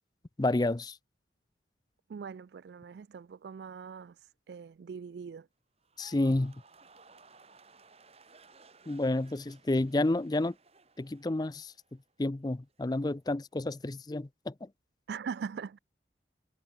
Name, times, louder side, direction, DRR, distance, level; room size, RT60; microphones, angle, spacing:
voice 1, 0.4-1.0 6.0-6.5 8.9-10.5 11.0-11.7 12.2-14.7, left 2 dB, 25° left, 0.5 m, -30 dB
voice 2, 2.1-5.5 15.1-15.8, right 6 dB, 65° right, 0.3 m, -41 dB
sound 1, 5.8-12.1 12.4-12.9, right 4 dB, 35° right, 3.6 m, -59 dB
head